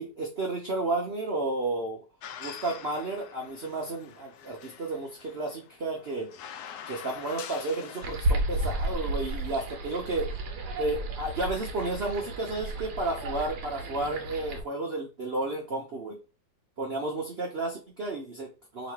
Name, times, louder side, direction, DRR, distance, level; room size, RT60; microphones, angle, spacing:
voice 1, 0.0-2.0 2.4-6.3 6.9-10.3 10.8-16.2 16.8-18.9, right 2 dB, 90° right, 0 dB, 0.5 m, -32 dB
sound 1, 2.2-8.2, left 8 dB, 75° left, 0.9 m, -45 dB
sound 2, 8.0-14.6, right 1 dB, 65° right, 1.2 m, -32 dB
3.1 x 2.9 x 4.5 m, 0.33 s
omnidirectional pair, 2.1 m